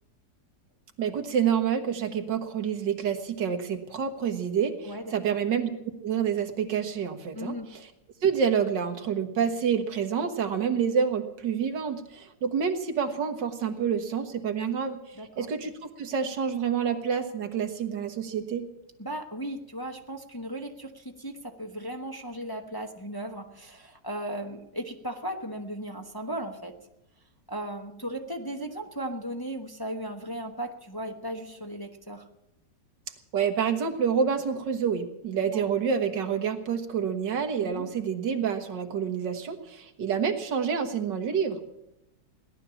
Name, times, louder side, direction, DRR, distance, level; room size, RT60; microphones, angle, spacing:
voice 1, 1.0-5.7 6.0-7.9 8.2-15.0 15.4-15.7 16.0-18.6 33.3-41.7, right 7 dB, 85° right, 7 dB, 2.1 m, -28 dB
voice 2, 4.8-5.1 7.3-7.7 15.1-15.5 19.0-26.7 27.5-32.2 35.5-35.7 37.6-37.9, right 1 dB, 15° left, 3 dB, 1.0 m, -36 dB
17.5 x 11.5 x 7.0 m, 0.90 s
omnidirectional pair, 1.9 m